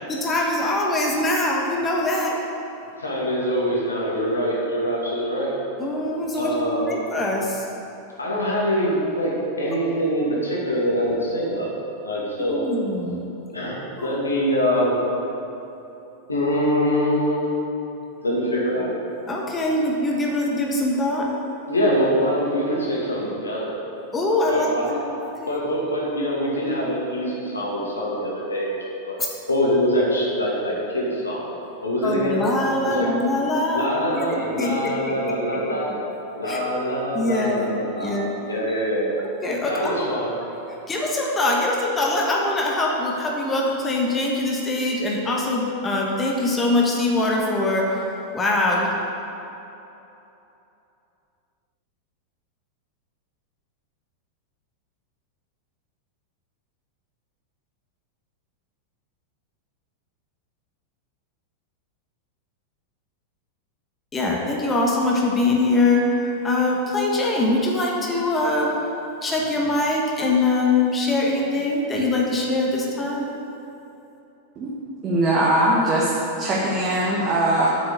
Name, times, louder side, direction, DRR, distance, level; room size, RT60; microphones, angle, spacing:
voice 1, 0.1-2.4 5.8-7.7 12.4-13.3 14.0-14.2 19.3-21.3 24.1-25.6 29.2-29.3 32.0-33.9 34.1-36.0 36.5-36.6 37.1-38.3 39.4-40.1 40.9-48.9 64.1-68.7 69.2-73.2, left 2 dB, 20° left, -2 dB, 1.4 m, -23 dB
voice 2, 3.0-5.5 6.4-7.0 8.2-11.7 12.0-12.7 13.5-15.0 16.3-17.8 18.2-18.9 21.7-23.7 24.5-24.9 25.5-28.8 29.1-29.2 29.5-31.4 31.8-32.4 32.8-33.1 33.7-35.9 36.3-39.1 39.7-40.3, equal, 75° left, -4 dB, 2.4 m, -24 dB
voice 3, 75.0-76.1 76.4-77.7, right 1 dB, 30° right, -5 dB, 1.6 m, -20 dB
8.2 x 6.4 x 8.0 m, 2.9 s
figure-of-eight pair, 90°, 0 cm